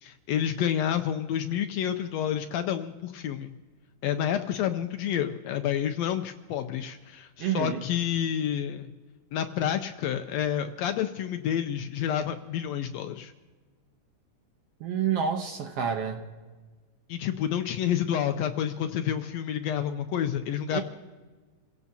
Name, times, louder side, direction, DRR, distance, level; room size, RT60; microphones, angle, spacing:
voice 1, 0.0-3.5 4.0-8.9 9.3-13.3 17.1-20.8, left 9 dB, 80° left, 8 dB, 1.6 m, -29 dB
voice 2, 7.4-7.8 14.8-16.2 20.7-20.8, right 7 dB, 65° right, 5 dB, 1.6 m, -28 dB
29.0 x 16.5 x 2.8 m, 1.3 s
omnidirectional pair, 3.6 m